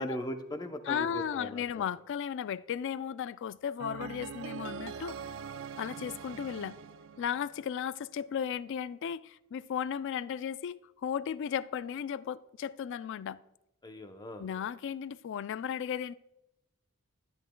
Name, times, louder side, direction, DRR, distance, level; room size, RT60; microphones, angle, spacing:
voice 1, 0.0-1.6 13.8-14.5, equal, 20° left, 0.7 m, -38 dB
voice 2, 0.9-5.2 5.8-6.8 7.2-13.4 14.4-16.1, left 8 dB, 60° left, 0.3 m, -35 dB
sound 1, 3.8-7.9, right 7 dB, 65° right, 0.4 m, -43 dB
12.0 x 10.5 x 2.2 m
head